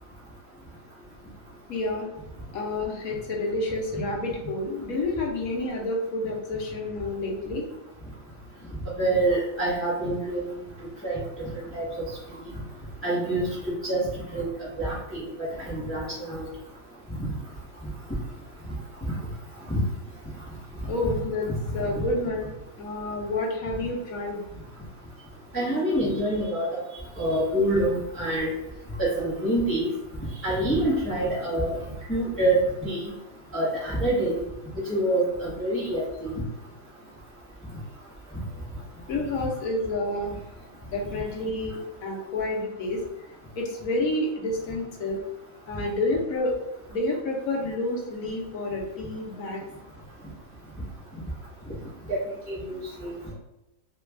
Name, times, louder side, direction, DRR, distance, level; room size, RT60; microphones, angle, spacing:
voice 1, 1.7-2.1 2.5-7.7 20.8-21.5 21.7-22.5 22.8-24.6 39.1-40.4 40.9-43.0 43.5-45.2 45.7-46.5 46.9-49.6, left 2 dB, 75° left, -1 dB, 1.2 m, -29 dB
voice 2, 9.0-10.4 11.0-11.2 11.7-11.8 13.0-13.5 13.8-14.0 14.3-14.5 14.8-15.3 15.6-16.4 19.7-19.8 25.5-26.7 27.2-28.5 29.0-29.9 30.4-31.8 32.1-33.0 33.5-34.4 34.9-36.3 52.1-52.2 52.5-53.2, right 1 dB, 10° left, -9 dB, 0.8 m, -26 dB
3.2 x 2.3 x 3.3 m, 0.92 s
omnidirectional pair, 1.5 m